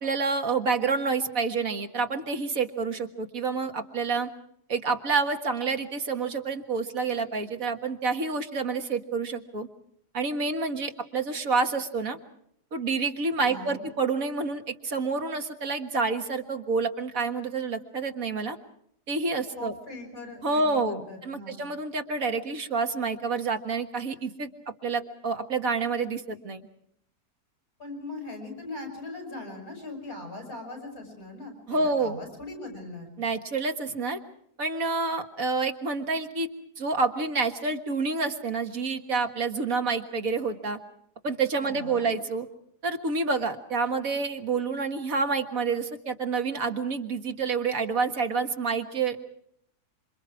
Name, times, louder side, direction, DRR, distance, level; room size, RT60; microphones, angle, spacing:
voice 1, 0.0-4.3 4.7-9.7 10.1-12.2 12.7-18.6 19.1-19.7 20.4-24.5 24.8-26.6 31.7-32.2 33.2-34.2 34.6-36.5 36.8-40.8 41.2-42.5 42.8-49.2, right 4 dB, 60° right, 5 dB, 2.0 m, -28 dB
voice 2, 13.4-13.9 19.5-21.6 27.8-33.1 41.6-42.1, left 2 dB, 60° left, 3 dB, 7.8 m, -40 dB
27.5 x 25.5 x 4.8 m, 0.71 s
omnidirectional pair, 1.7 m